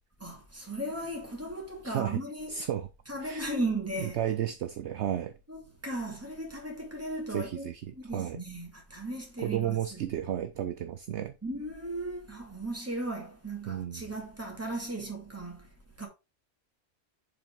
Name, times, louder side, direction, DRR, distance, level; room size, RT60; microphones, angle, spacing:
voice 1, 0.2-2.7 3.1-4.2 5.5-10.0 11.4-16.1, right 1 dB, 10° right, 2.2 m, -36 dB
voice 2, 1.8-2.2 2.5-2.9 3.2-3.5 4.2-5.4 7.3-8.4 9.4-11.3 13.7-14.1, right 11 dB, 65° right, 0.8 m, -33 dB
7.5 x 5.1 x 3.6 m
omnidirectional pair, 1.4 m